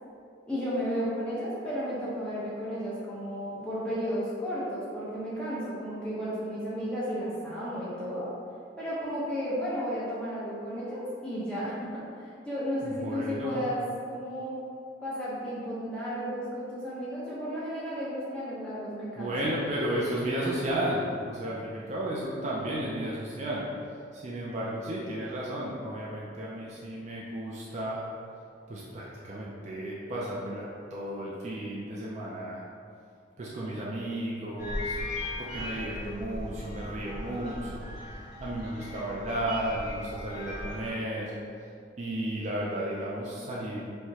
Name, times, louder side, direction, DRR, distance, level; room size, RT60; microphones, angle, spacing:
voice 1, 0.5-8.3 8.8-14.6 15.0-19.3, equal, 5° left, -10 dB, 0.8 m, -33 dB
voice 2, 12.8-13.7 19.2-28.0 28.7-32.6 33.4-35.0 35.4-41.3 41.6-41.7 42.0-43.8, right 1 dB, 35° right, -5 dB, 0.4 m, -33 dB
sound 1, 34.6-40.9, left 1 dB, 35° left, 1.1 m, -38 dB
4.6 x 2.1 x 2.8 m, 2.4 s
head